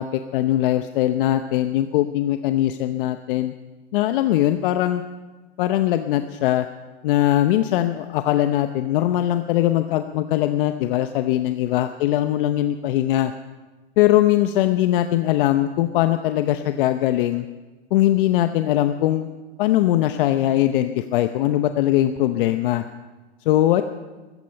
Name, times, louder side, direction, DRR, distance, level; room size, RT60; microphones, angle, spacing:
voice 1, 0.0-3.5 3.9-5.0 5.6-6.7 7.0-13.3 14.0-17.5 17.9-19.3 19.6-22.8 23.5-23.8, left 13 dB, 55° left, 9 dB, 0.8 m, -21 dB
16.0 x 14.5 x 5.7 m, 1.2 s
hypercardioid pair, 130°, 33 cm